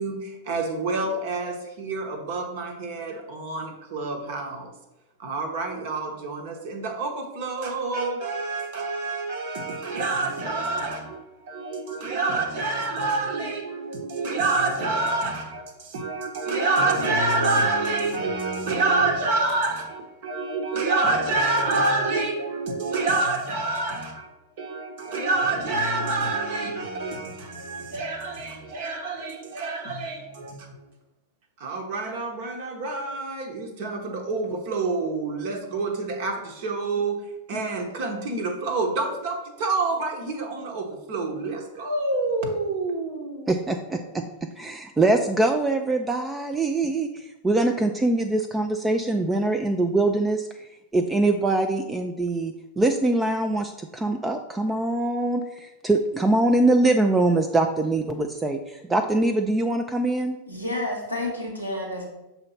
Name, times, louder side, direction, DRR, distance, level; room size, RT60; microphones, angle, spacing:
voice 1, 0.0-4.7 5.2-30.7 31.6-37.2 37.5-43.5, right 3 dB, 50° right, 3 dB, 1.0 m, -27 dB
voice 2, 43.5-60.4, right 2 dB, 10° right, 5 dB, 0.4 m, -23 dB
voice 3, 60.5-62.1, left 1 dB, 85° right, 0 dB, 1.5 m, -30 dB
6.7 x 2.9 x 5.7 m, 0.98 s
figure-of-eight pair, 90°, 0 cm